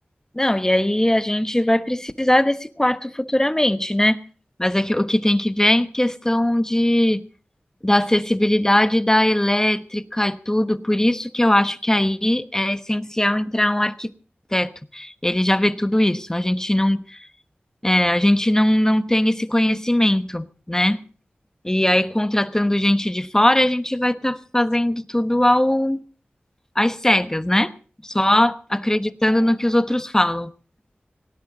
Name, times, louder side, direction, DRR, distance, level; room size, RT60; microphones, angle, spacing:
voice 1, 0.3-4.2 4.6-7.2 7.8-14.1 14.5-17.3 17.8-21.0 21.6-26.0 26.7-27.7 28.0-30.5, left 1 dB, 15° left, 1.0 m, -20 dB
18.5 x 17.5 x 3.9 m
wide cardioid pair, 75°, 4 cm